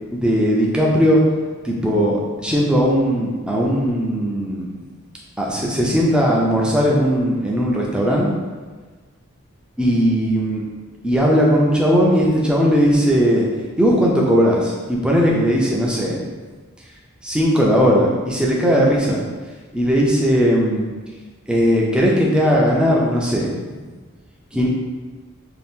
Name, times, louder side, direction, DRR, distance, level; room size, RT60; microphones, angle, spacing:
voice 1, 0.1-1.2 1.6-4.7 5.4-8.3 9.8-10.6 11.0-13.5 13.8-16.2 17.2-19.2 19.7-20.9 21.5-23.5 24.5-24.7, equal, 5° right, -3 dB, 0.4 m, -18 dB
2.7 x 2.4 x 3.5 m, 1.4 s
head